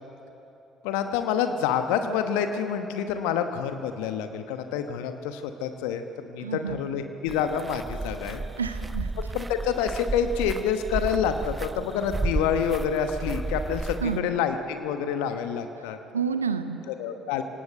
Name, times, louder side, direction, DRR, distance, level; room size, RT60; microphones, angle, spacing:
voice 1, 0.8-8.4 9.2-16.0 17.0-17.4, left 7 dB, 70° left, 7 dB, 1.1 m, -28 dB
voice 2, 6.4-6.8 8.6-9.1 14.0-14.3 15.8-15.9 16.1-16.8, right 6 dB, 85° right, 10 dB, 0.7 m, -29 dB
sound 1, 7.3-14.2, right 3 dB, 20° right, 0.8 m, -33 dB
26.5 x 18.0 x 8.0 m, 2.9 s
figure-of-eight pair, 50°, 0 cm